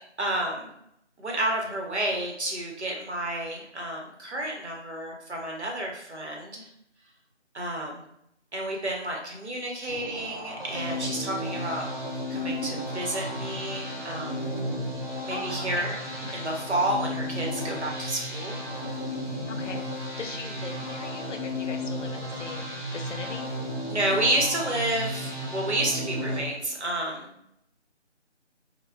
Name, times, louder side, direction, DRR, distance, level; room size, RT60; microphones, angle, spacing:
voice 1, 0.2-0.7 1.2-6.7 7.5-8.0 8.5-11.9 12.3-14.5 15.2-15.9 16.3-18.6 23.9-27.3, right 1 dB, 70° right, 0 dB, 0.9 m, -30 dB
sound 1, 9.9-26.4, equal, 45° left, 0.4 m, -33 dB
voice 2, 15.3-15.9 16.3-16.4 19.5-19.9 20.2-23.8, left 4 dB, 85° left, 5 dB, 0.6 m, -40 dB
2.2 x 2.1 x 3.4 m, 0.74 s
figure-of-eight pair, 180°, 35 cm